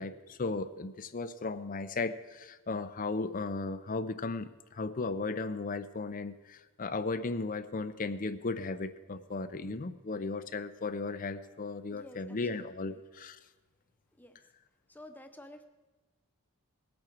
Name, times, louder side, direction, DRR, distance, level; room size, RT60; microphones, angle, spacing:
voice 1, 0.0-13.4, left 3 dB, 40° left, 12 dB, 0.6 m, -36 dB
voice 2, 11.9-13.0 14.2-14.4 14.9-15.6, left 1 dB, 10° left, 7 dB, 0.9 m, -51 dB
20.5 x 8.6 x 4.6 m, 1.3 s
head